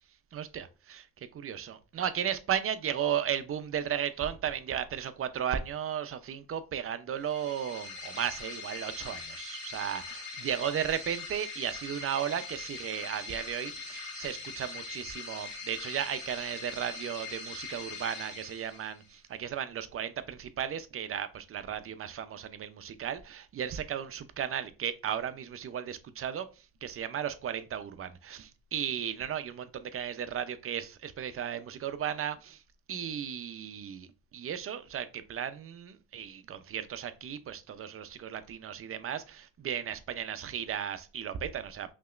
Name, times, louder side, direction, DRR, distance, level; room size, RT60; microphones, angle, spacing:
voice 1, 0.3-0.6 0.9-1.0 1.3-26.5 26.8-32.6 32.9-34.1 34.3-41.9, right 9 dB, 45° right, 0.6 m, -35 dB
sound 1, 7.2-19.1, left 4 dB, 80° left, 1.8 m, -42 dB
5.4 x 2.9 x 2.4 m
cardioid pair, 90°, 30 cm